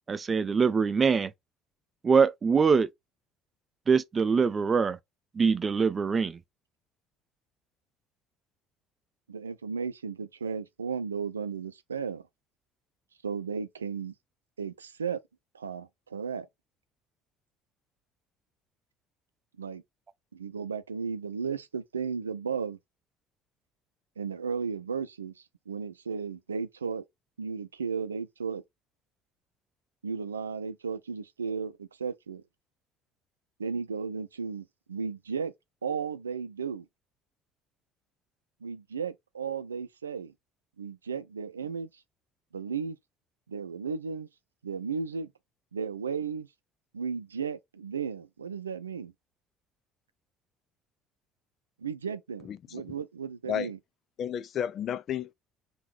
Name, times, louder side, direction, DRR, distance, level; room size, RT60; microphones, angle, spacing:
voice 1, 0.1-1.3 2.0-2.9 3.9-5.0 5.4-6.4, right 5 dB, 30° right, 0.6 m, -23 dB
voice 2, 9.3-12.2 13.2-14.1 14.6-15.2 15.5-16.5 19.6-19.8 20.3-22.8 24.2-27.0 27.4-28.6 30.0-32.4 33.6-35.5 35.8-36.9 38.6-40.3 40.8-41.9 42.5-43.0 43.5-44.3 44.6-45.3 45.7-46.5 46.9-49.1 51.8-53.8, right 6 dB, 85° right, 0.5 m, -34 dB
voice 3, 52.4-52.8 53.5-53.7 54.2-55.3, left 9 dB, 50° left, 0.5 m, -32 dB
3.8 x 2.9 x 4.3 m
figure-of-eight pair, 55°, 0 cm